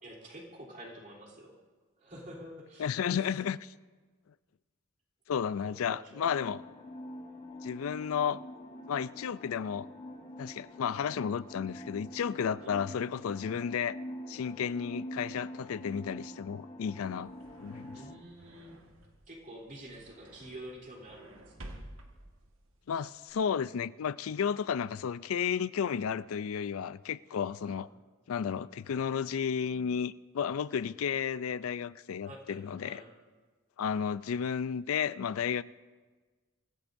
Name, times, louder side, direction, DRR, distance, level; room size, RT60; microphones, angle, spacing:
voice 1, 0.0-1.6 2.0-2.9 3.3-3.4 5.9-6.3 12.6-13.0 17.9-18.8 19.3-21.8 27.7-27.8 32.2-33.1, right 1 dB, 40° right, 3.3 m, -48 dB
voice 2, 2.8-3.7 5.3-6.6 7.6-8.4 8.9-9.9 10.4-14.0 14.3-17.3 17.6-18.0 22.9-27.9 28.3-33.0 33.8-35.6, left 7 dB, 80° left, 0.4 m, -33 dB
sound 1, 6.3-18.2, equal, 35° left, 1.5 m, -45 dB
sound 2, 16.9-23.3, right 1 dB, 75° right, 1.6 m, -52 dB
26.0 x 15.5 x 2.6 m
head